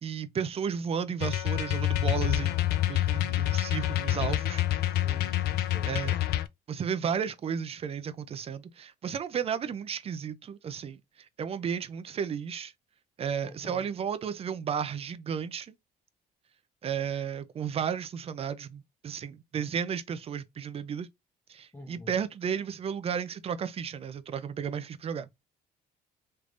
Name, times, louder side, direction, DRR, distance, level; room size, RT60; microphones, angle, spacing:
voice 1, 0.0-2.6 2.9-4.6 5.8-6.2 6.7-12.7 13.2-15.7 16.8-21.1 21.5-25.3, right 7 dB, 35° right, 0.5 m, -33 dB
sound 1, 1.2-6.5, left 13 dB, 70° left, 0.4 m, -27 dB
voice 2, 4.9-6.2 13.4-13.8 21.7-22.1, left 1 dB, 10° left, 0.9 m, -47 dB
3.3 x 3.2 x 2.5 m
cardioid pair, 110°, 17 cm